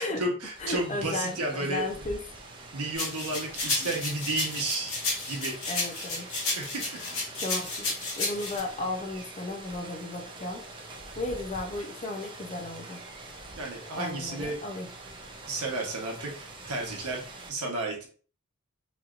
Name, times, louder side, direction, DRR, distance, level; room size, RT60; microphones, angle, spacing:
voice 1, 0.0-1.8 2.7-5.0 5.3-5.5 6.5-7.0 13.6-14.6 15.5-17.2 17.5-18.1, right 2 dB, 80° right, 1 dB, 1.0 m, -32 dB
voice 2, 0.6-2.2 3.6-3.9 5.7-6.3 7.0-7.1 7.4-7.9 8.2-10.6 11.2-13.0 14.0-14.9, left 2 dB, 30° left, 3 dB, 0.5 m, -34 dB
Rain, 0.6-17.5, right 2 dB, 20° right, 0.4 m, -45 dB
sound 1, 3.0-8.6, left 3 dB, 60° left, 1.2 m, -32 dB
3.0 x 2.7 x 2.4 m, 0.40 s
head